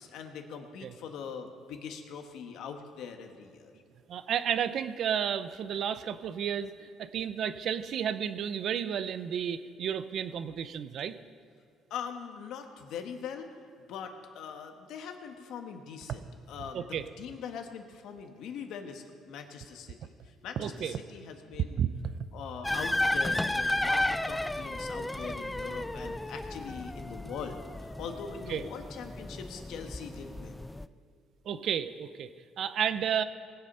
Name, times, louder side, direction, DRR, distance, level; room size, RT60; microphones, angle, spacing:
voice 1, 0.0-3.7 11.9-13.5 13.9-16.9 17.2-21.8 22.3-30.7, left 6 dB, 75° left, 5 dB, 1.4 m, -42 dB
voice 2, 4.1-11.1 16.7-17.1 20.6-21.0 21.8-21.9 28.5-28.6 31.4-32.3 32.6-33.2, right 8 dB, 60° right, 12 dB, 0.7 m, -32 dB
sound 1, 22.6-30.9, left 1 dB, 10° left, 0.3 m, -33 dB
20.0 x 8.0 x 5.6 m, 2.3 s
cardioid pair, 110°, 0 cm